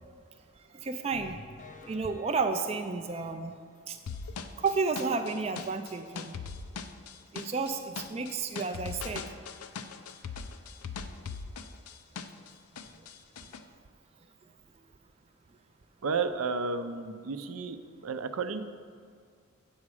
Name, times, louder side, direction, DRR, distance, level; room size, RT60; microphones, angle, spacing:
voice 1, 0.7-1.4 1.9-3.5 3.9-4.0 4.6-6.3 7.3-9.2, right 4 dB, 30° right, 6 dB, 0.3 m, -31 dB
sound 1, 1.1-3.8 4.2-4.3 4.7-4.8 5.2-5.3, left 3 dB, 35° left, 0.5 m, -51 dB
sound 2, 4.1-12.5 12.7-13.6, left 5 dB, 90° left, 0.5 m, -40 dB
voice 2, 16.0-17.8 18.0-18.6, right 4 dB, 80° right, 10 dB, 0.5 m, -32 dB
8.4 x 6.3 x 4.8 m, 2.1 s
head